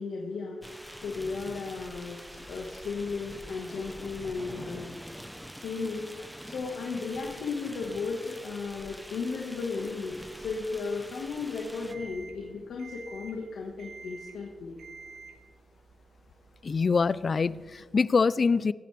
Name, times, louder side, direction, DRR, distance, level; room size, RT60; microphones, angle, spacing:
voice 1, 0.0-5.2 5.6-14.8, left 4 dB, 85° left, -1 dB, 1.6 m, -35 dB
sound 1, 0.6-11.9, equal, ahead, 0.9 m, -45 dB
sound 2, 11.9-18.0, right 4 dB, 85° right, 1.4 m, -50 dB
voice 2, 16.6-18.7, left 4 dB, 50° left, 19 dB, 0.4 m, -24 dB
23.0 x 9.1 x 3.4 m, 1.5 s
cardioid pair, 65°, 0 cm